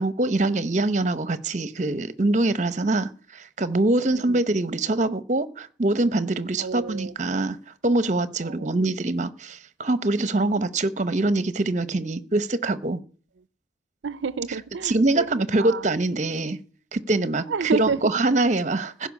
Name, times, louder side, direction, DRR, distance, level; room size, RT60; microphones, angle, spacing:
voice 1, 0.0-7.6 7.8-13.0 14.8-16.6 16.9-17.5 17.8-19.1, right 2 dB, 40° right, 0.9 m, -24 dB
voice 2, 4.1-4.4 6.6-7.1 8.4-8.8 14.0-15.3 15.6-15.9 17.5-18.0, right 5 dB, 85° right, 0.5 m, -30 dB
16.0 x 5.8 x 8.3 m
head